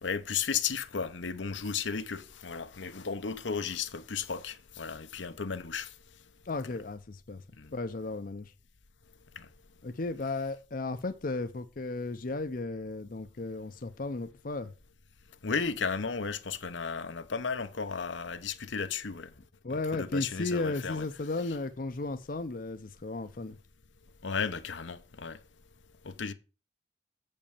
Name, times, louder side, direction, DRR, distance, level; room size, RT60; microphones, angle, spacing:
voice 1, 0.0-5.9 7.6-7.7 9.4-9.5 15.4-19.3 19.7-21.0 24.2-25.4 26.0-26.3, left 6 dB, 90° left, 0.9 m, -34 dB
voice 2, 6.5-7.4 7.7-8.5 9.8-14.7 19.6-23.6, left 3 dB, 50° left, 0.6 m, -35 dB
7.6 x 5.3 x 7.0 m
head